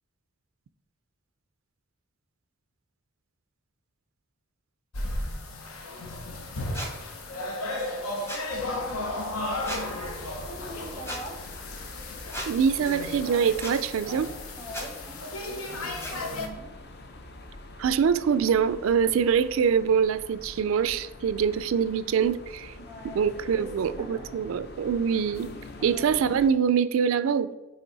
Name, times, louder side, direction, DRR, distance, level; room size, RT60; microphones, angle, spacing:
sound 1, 4.9-16.5, left 2 dB, 90° left, 0.9 m, -34 dB
sound 2, 6.7-6.9 8.3-8.5 9.6-9.8 11.0-11.2 12.3-12.5 13.6-13.8 14.7-14.9 16.0-16.1, equal, 10° left, 0.9 m, -35 dB
sound 3, 8.5-26.5, left 2 dB, 50° left, 0.6 m, -45 dB
voice 1, 10.4-11.4 14.6-16.7 22.8-23.7 24.0-24.2 25.8-26.4, equal, 30° left, 0 dB, 1.4 m, -43 dB
voice 2, 12.5-14.3 17.8-22.7 23.0-25.5 25.8-27.5, right 7 dB, 75° right, 14 dB, 0.3 m, -24 dB
9.2 x 3.3 x 4.0 m, 1.1 s
head